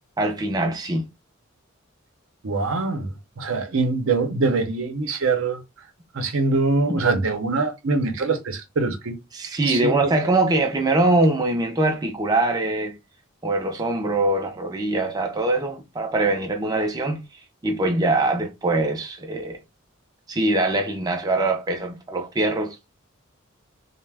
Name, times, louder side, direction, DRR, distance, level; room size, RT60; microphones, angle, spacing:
voice 1, 0.2-1.1 6.9-7.0 9.3-12.9 13.4-17.2 17.6-19.6 20.3-22.8, right 2 dB, 20° right, 0.4 m, -23 dB
voice 2, 2.4-5.6 6.1-9.2 9.7-10.1, right 3 dB, 75° right, 0.6 m, -23 dB
2.3 x 2.0 x 3.3 m
head